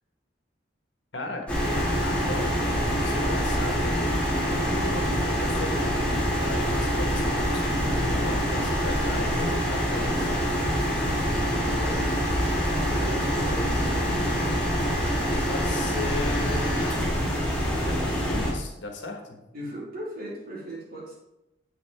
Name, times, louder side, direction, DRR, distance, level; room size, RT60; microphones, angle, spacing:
voice 1, 1.1-10.3 15.5-19.4, left 2 dB, 75° left, 3 dB, 1.3 m, -36 dB
sound 1, 1.5-18.5, equal, 5° left, 1.9 m, -25 dB
voice 2, 9.5-10.1 11.0-14.4 19.5-21.1, right 1 dB, 50° right, -6 dB, 3.2 m, -39 dB
7.7 x 7.0 x 3.4 m, 0.90 s
head